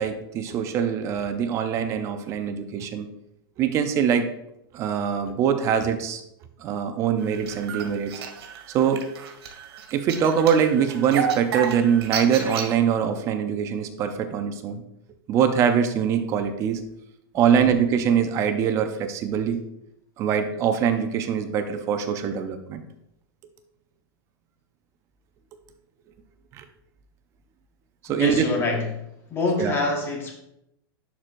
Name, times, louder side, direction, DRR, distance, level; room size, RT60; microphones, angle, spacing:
voice 1, 0.0-3.1 3.6-4.3 4.7-6.2 6.6-8.1 8.7-9.1 9.9-14.8 15.3-16.8 17.3-19.6 20.2-22.8 26.5-26.6 28.0-28.5 29.6-29.7, right 8 dB, 25° right, 8 dB, 0.5 m, -23 dB
sound 1, 7.2-12.7, right 7 dB, 80° right, 2.0 m, -32 dB
voice 2, 17.3-17.8 28.1-29.0 29.3-30.3, left 3 dB, 20° left, 2 dB, 1.1 m, -26 dB
11.0 x 4.5 x 2.5 m, 0.80 s
supercardioid pair, 160°, 13 cm